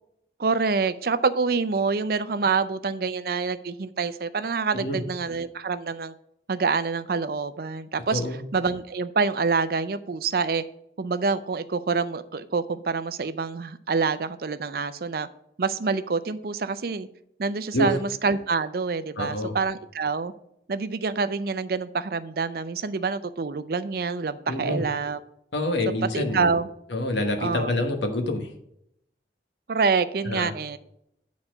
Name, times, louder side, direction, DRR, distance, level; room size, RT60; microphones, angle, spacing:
voice 1, 0.4-6.1 6.5-8.2 8.5-10.6 11.0-15.3 15.6-17.1 17.4-20.3 20.7-25.2 26.0-26.7 27.4-27.7 29.7-30.8, right 4 dB, 55° right, 13 dB, 0.5 m, -26 dB
voice 2, 19.2-19.5 24.5-24.8 25.5-26.5 26.9-28.5 30.2-30.5, left 1 dB, 90° left, 5 dB, 1.3 m, -27 dB
8.9 x 4.2 x 6.0 m, 0.76 s
head